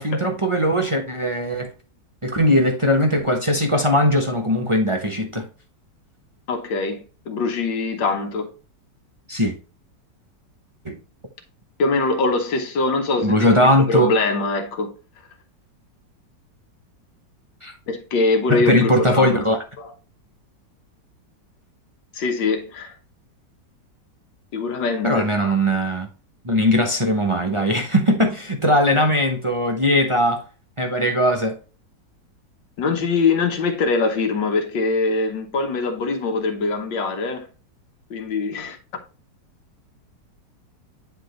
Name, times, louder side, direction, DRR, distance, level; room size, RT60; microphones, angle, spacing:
voice 1, 0.0-1.7 2.2-5.5 9.3-9.5 10.8-11.0 13.2-14.1 17.6-17.7 18.5-19.6 25.0-26.1 26.4-30.4 30.8-31.6, equal, 25° right, 0.7 m, -19 dB
voice 2, 6.5-8.5 11.8-14.9 17.9-19.4 19.8-19.9 22.1-22.9 24.5-25.5 32.8-37.5 38.1-38.8, left 3 dB, 85° left, 1.8 m, -23 dB
10.5 x 3.7 x 3.1 m
omnidirectional pair, 1.9 m